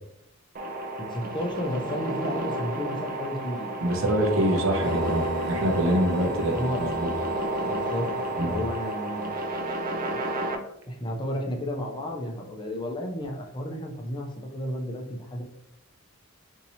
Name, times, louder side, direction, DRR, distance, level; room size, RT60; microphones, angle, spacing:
sound 1, 0.6-10.6, right 1 dB, 45° right, 0.4 m, -31 dB
voice 1, 1.0-3.8 5.7-6.0 6.3-6.9 7.6-9.3 10.9-15.4, left 1 dB, 25° left, 1 dB, 0.5 m, -33 dB
voice 2, 3.8-7.1 8.4-8.6, equal, 80° right, 3 dB, 0.7 m, -25 dB
sound 2, 4.8-9.1, right 1 dB, 65° left, 0.6 m, -39 dB
2.8 x 2.7 x 4.0 m, 0.81 s
head